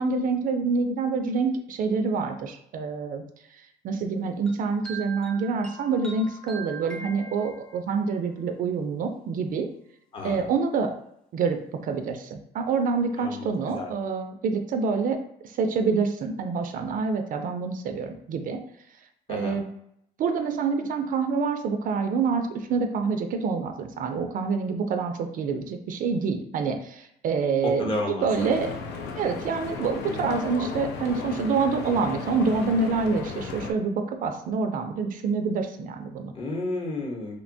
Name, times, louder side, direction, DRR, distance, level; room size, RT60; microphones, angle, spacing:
voice 1, 0.0-3.2 3.5-9.7 10.2-10.9 11.3-15.2 15.4-18.6 19.3-19.7 20.2-27.9 28.2-28.7 29.2-36.3, right 5 dB, 55° right, 6 dB, 0.4 m, -27 dB
sound 1, 4.5-8.0, right 4 dB, 5° left, 0.5 m, -42 dB
voice 2, 13.2-13.9 19.3-19.6 27.6-28.6 36.3-37.4, left 2 dB, 30° left, -1 dB, 0.8 m, -32 dB
Stream / Boat Water vehicle, 28.3-33.7, left 4 dB, 85° left, 0.5 m, -34 dB
2.9 x 2.1 x 2.6 m, 0.75 s
cardioid pair, 110°, 17 cm